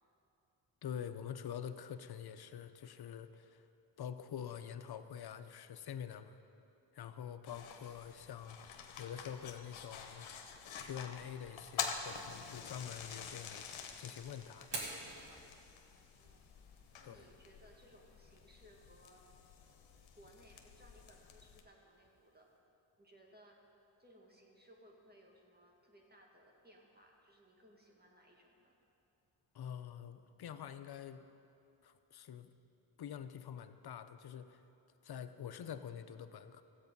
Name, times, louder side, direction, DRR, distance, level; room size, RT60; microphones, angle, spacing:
voice 1, 0.8-3.6 4.0-6.4 6.9-8.6 9.0-10.3 10.8-13.6 14.0-14.9 17.0-17.3 29.5-31.3 31.8-32.5 33.0-34.6 35.0-36.6, left 8 dB, 55° left, 11 dB, 0.7 m, -46 dB
sound 1, 7.5-21.6, left 7 dB, 80° left, 1.1 m, -48 dB
Fire, 14.6-22.6, right 3 dB, 60° right, 2.1 m, -52 dB
voice 2, 15.8-16.5 16.9-19.2 20.2-22.5 23.0-23.6 24.0-28.8, equal, 20° right, -1 dB, 2.0 m, -63 dB
13.5 x 8.2 x 5.4 m, 2.8 s
cardioid pair, 60°, 47 cm